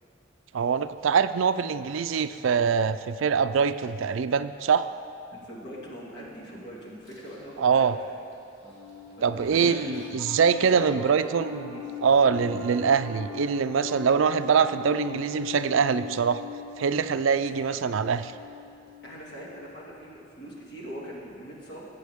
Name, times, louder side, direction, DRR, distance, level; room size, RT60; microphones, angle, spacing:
voice 1, 0.5-4.9 7.6-8.0 9.2-16.4 16.8-18.3, right 6 dB, 85° right, 12 dB, 0.4 m, -24 dB
voice 2, 5.3-7.9 9.2-10.1 10.5-12.0 19.0-21.9, equal, 60° left, -5 dB, 2.5 m, -42 dB
sound 1, 7.0-11.0 11.3-11.4 11.7-12.7, left 1 dB, 30° left, 2.9 m, -48 dB
Piano, 8.6-20.1, left 6 dB, ahead, 1.3 m, -41 dB
19.5 x 8.4 x 3.6 m, 2.6 s
head